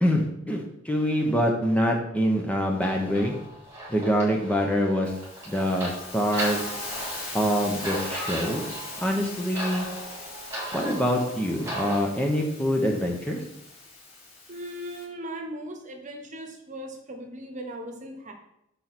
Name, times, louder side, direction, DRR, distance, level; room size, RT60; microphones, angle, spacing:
voice 1, 0.0-3.3 3.9-5.1 5.5-6.6 7.3-8.7 9.0-9.9 10.7-13.4, equal, 5° left, 1 dB, 0.8 m, -25 dB
sound 1, 2.8-12.0, right 1 dB, 15° right, 1.9 m, -37 dB
Hiss, 5.0-15.0, left 3 dB, 50° left, 2.7 m, -40 dB
voice 2, 14.5-18.3, right 1 dB, 40° right, 3 dB, 1.1 m, -38 dB
5.4 x 4.6 x 6.0 m, 0.78 s
head